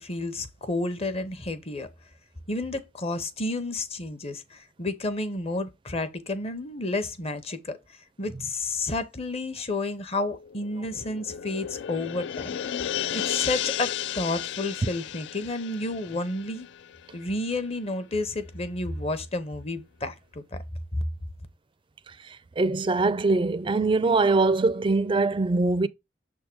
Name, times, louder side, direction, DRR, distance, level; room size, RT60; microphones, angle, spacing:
voice 1, 0.0-1.9 2.5-7.8 8.2-12.6 13.1-16.7 17.1-20.6 20.9-21.0, left 2 dB, 35° left, 0.8 m, -31 dB
sound 1, 10.4-17.3 17.7-17.8, left 10 dB, 65° left, 0.3 m, -33 dB
voice 2, 22.6-25.9, right 3 dB, 30° right, 0.4 m, -22 dB
6.7 x 3.6 x 4.4 m
head